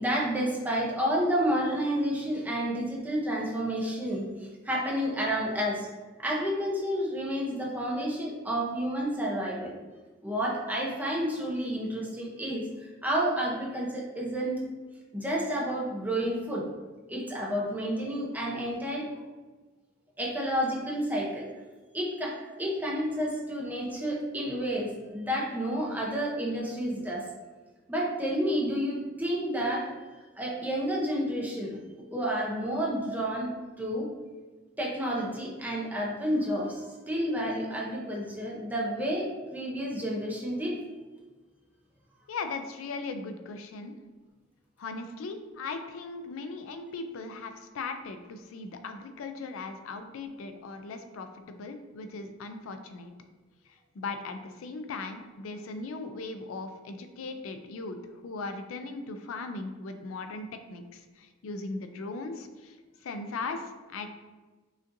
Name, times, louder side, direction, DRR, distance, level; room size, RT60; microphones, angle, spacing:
voice 1, 0.0-5.9 6.2-9.7 10.2-14.6 15.1-16.7 17.1-19.1 20.2-21.4 21.9-27.2 27.9-31.8 32.1-34.1 34.8-40.7, equal, 10° right, -4 dB, 0.6 m, -30 dB
voice 2, 42.3-43.9 44.8-53.1 54.0-62.8 63.0-64.1, left 3 dB, 80° left, 7 dB, 0.4 m, -38 dB
5.0 x 2.6 x 2.6 m, 1.3 s
head